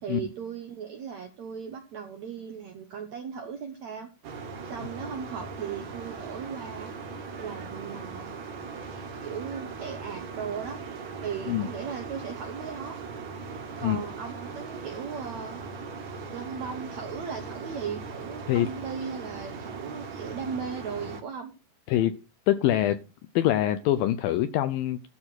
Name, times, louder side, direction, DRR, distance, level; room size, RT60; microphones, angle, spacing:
voice 1, 0.0-4.1 4.6-6.9 7.4-8.3 9.2-10.8 11.2-13.0 13.8-15.7 16.3-21.5, right 6 dB, 70° right, 1.7 m, -37 dB
sound 1, 4.2-21.2, right 4 dB, 55° right, 2.6 m, -39 dB
voice 2, 21.9-22.2 22.5-23.0 23.4-25.1, left 12 dB, 80° left, 2.1 m, -24 dB
13.0 x 4.4 x 7.8 m
omnidirectional pair, 4.8 m